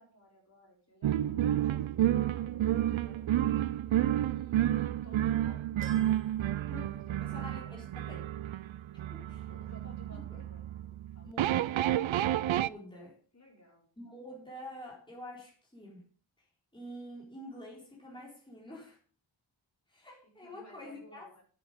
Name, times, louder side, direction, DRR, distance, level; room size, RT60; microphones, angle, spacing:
voice 1, 0.0-3.3 3.9-4.6 4.8-6.0 7.1-7.8 9.3-11.9 13.3-13.9 20.4-21.4, equal, 35° left, -2 dB, 4.7 m, -57 dB
sound 1, 1.0-12.7, right 12 dB, 75° right, 0.5 m, -30 dB
sound 2, 5.8-7.4 7.9-8.0 9.2-9.3, right 2 dB, 25° right, 1.6 m, -53 dB
voice 2, 6.6-8.2 9.1-9.5 10.3-10.4 11.2-11.7 12.5-13.2 14.0-16.0 16.7-19.0 19.9-21.3, left 1 dB, 10° left, -4 dB, 4.0 m, -47 dB
9.7 x 9.3 x 5.1 m, 0.42 s
wide cardioid pair, 110°, 47 cm